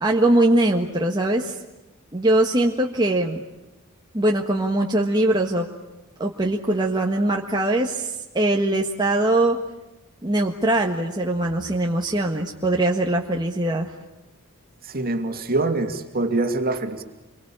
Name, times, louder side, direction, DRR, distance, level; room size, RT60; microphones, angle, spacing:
voice 1, 0.0-1.6 2.1-3.4 4.1-5.7 6.2-9.6 10.2-13.9, right 1 dB, 20° right, 0 dB, 1.6 m, -21 dB
voice 2, 14.8-17.0, right 2 dB, 45° right, 6 dB, 2.7 m, -24 dB
27.5 x 23.5 x 8.8 m, 1.0 s
head